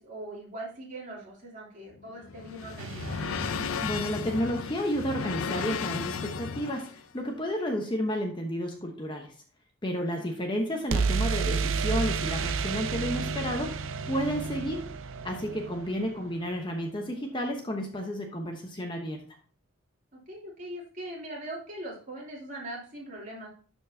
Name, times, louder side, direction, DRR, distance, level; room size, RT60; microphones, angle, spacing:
voice 1, 0.0-3.2 10.1-10.4 20.1-23.5, right 1 dB, 40° right, -4 dB, 3.0 m, -41 dB
sound 1, 1.9-7.0, left 5 dB, 90° left, 0.5 m, -34 dB
sound 2, 2.8-4.8 10.9-16.7, right 5 dB, 75° right, 0.5 m, -32 dB
voice 2, 3.8-9.3 9.8-14.9 15.2-19.2, equal, 25° left, 2 dB, 0.9 m, -31 dB
12.0 x 4.6 x 2.7 m, 0.42 s
head